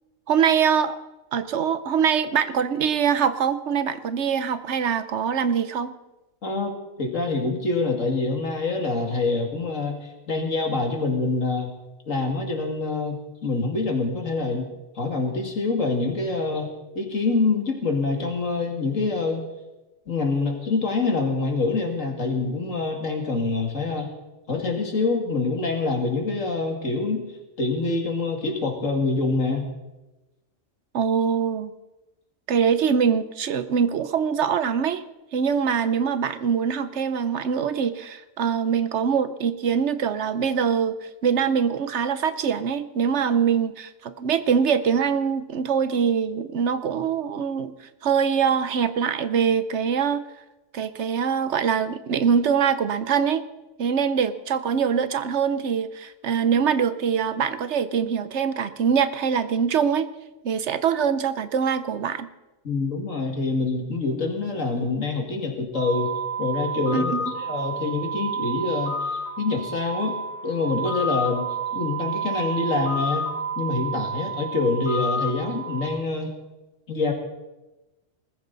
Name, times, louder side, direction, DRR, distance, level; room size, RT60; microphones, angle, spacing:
voice 1, 0.3-1.0 1.3-5.9 30.9-31.7 32.5-35.0 35.3-41.0 41.2-47.7 48.0-50.2 50.7-53.4 53.8-60.1 60.4-62.3 66.9-67.3, right 7 dB, 65° right, 13 dB, 1.1 m, -23 dB
voice 2, 7.0-10.0 10.3-11.7 12.1-14.7 15.0-19.5 20.1-24.1 24.5-27.2 27.6-29.7 62.6-66.1 66.4-70.2 70.4-71.5 71.7-73.3 73.6-76.3 76.9-77.1, left 3 dB, 85° left, 3 dB, 2.7 m, -25 dB
sound 1, 65.7-75.9, right 2 dB, 15° right, 6.4 m, -30 dB
20.0 x 14.5 x 4.0 m, 1.0 s
omnidirectional pair, 1.3 m